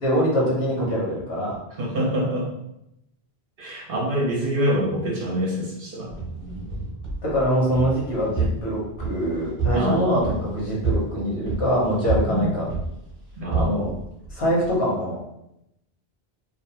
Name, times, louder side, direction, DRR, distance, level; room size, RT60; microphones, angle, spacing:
voice 1, 0.0-1.6 7.2-12.7 13.5-13.9 14.3-15.2, equal, 80° left, -4 dB, 1.1 m, -24 dB
voice 2, 1.8-2.6 3.6-6.1 9.7-10.3 12.3-12.5 13.4-13.8, equal, 60° right, -3 dB, 0.9 m, -25 dB
sound 1, 6.1-14.7, right 3 dB, 30° right, 0.9 m, -30 dB
2.7 x 2.1 x 2.8 m, 0.82 s
omnidirectional pair, 1.1 m